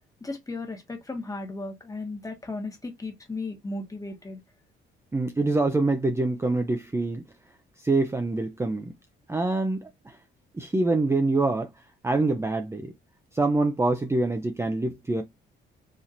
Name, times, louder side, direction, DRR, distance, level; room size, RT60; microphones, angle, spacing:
voice 1, 0.2-4.4, left 2 dB, 15° left, 1.3 m, -35 dB
voice 2, 5.1-7.2 7.8-8.9 9.3-10.2 10.6-11.7 12.0-12.9 13.3-15.2, right 2 dB, 15° right, 0.6 m, -25 dB
4.2 x 2.8 x 2.5 m
cardioid pair, 90°, 20 cm